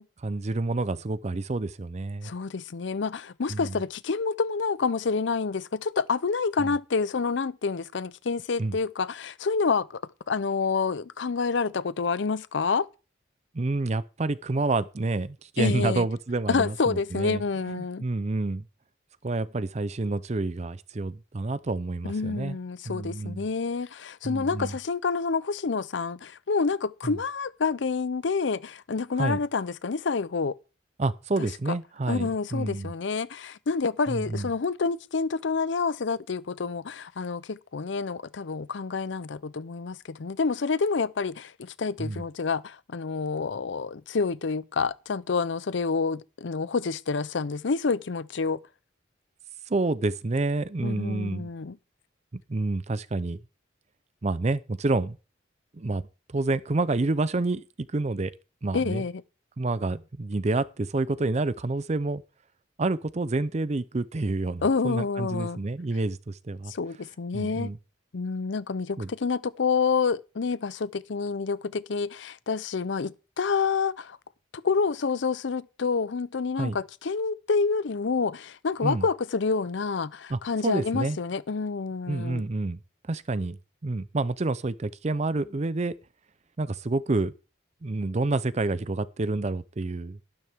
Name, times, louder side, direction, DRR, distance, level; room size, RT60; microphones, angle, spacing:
voice 1, 0.2-2.3 3.5-3.8 6.6-6.7 8.6-8.8 13.5-18.7 19.2-22.6 22.9-23.5 24.2-24.7 27.0-27.2 29.2-29.4 31.0-32.9 34.1-34.5 42.0-42.2 49.7-51.5 52.3-53.4 54.2-55.2 55.7-56.0 56.3-58.3 58.6-59.0 59.6-62.2 62.8-66.7 67.3-67.8 69.0-69.1 76.6-76.8 78.8-79.0 80.3-81.2 82.1-82.8 83.1-85.9 86.6-87.3 87.8-90.2, right 2 dB, 35° right, 0.5 m, -28 dB
voice 2, 2.2-10.0 10.3-12.9 15.6-16.1 16.5-18.1 22.0-30.6 31.4-31.5 32.1-48.6 50.8-51.8 58.7-59.2 64.6-65.6 66.7-67.7 68.1-74.2 74.5-82.4, left 4 dB, 70° left, 0.6 m, -28 dB
12.5 x 12.5 x 3.5 m
head